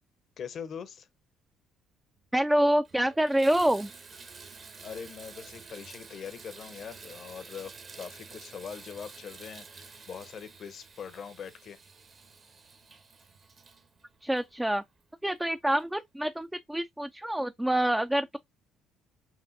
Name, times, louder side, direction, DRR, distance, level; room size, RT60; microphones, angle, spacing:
voice 1, 0.4-1.1 4.8-11.8, left 7 dB, 55° left, 0.7 m, -42 dB
Water tap faucet / Bathtub (filling or washing), 2.2-2.3 2.7-15.1 15.8-15.9 16.4-16.5, right 4 dB, 45° right, 0.9 m, -50 dB
voice 2, 2.3-3.9 14.2-14.8 15.2-18.4, right 1 dB, 10° right, 0.3 m, -26 dB
5.8 x 2.5 x 2.5 m
supercardioid pair, 60°, 0 cm